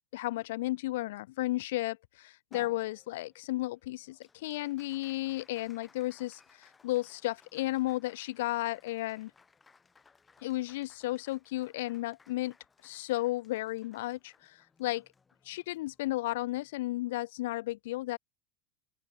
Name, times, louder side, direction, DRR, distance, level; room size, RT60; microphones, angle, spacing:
voice 1, 0.1-9.3 10.4-12.5 12.8-15.0 15.5-18.2, left 17 dB, 80° left, 0.5 m, -34 dB
Applause, 2.5-17.2, left 4 dB, 20° left, 7.6 m, -63 dB
open air
supercardioid pair, 110°, 0 cm